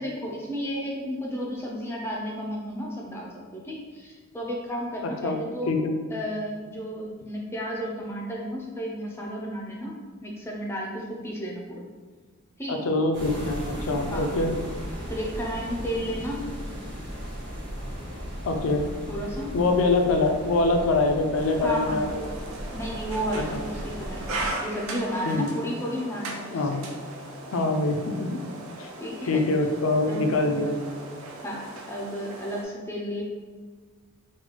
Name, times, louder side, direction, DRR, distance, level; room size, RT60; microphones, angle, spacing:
voice 1, 0.0-5.8 6.1-11.9 12.6-12.8 14.1-14.3 15.1-16.5 19.1-19.5 21.6-22.1 22.7-26.6 29.0-29.4 30.1-30.6 31.4-33.2, equal, 10° left, -2 dB, 0.4 m, -33 dB
voice 2, 12.7-14.5 18.5-18.8 19.5-22.2 23.3-23.6 25.2-25.5 26.5-26.8 27.5-28.4 28.8-28.9 29.2-30.8, left 2 dB, 70° left, 4 dB, 0.4 m, -24 dB
sound 1, 13.1-24.5, equal, 55° right, 1.4 m, -36 dB
sound 2, 21.3-32.6, right 2 dB, 75° right, 0.6 m, -38 dB
4.0 x 2.2 x 3.0 m, 1.4 s
head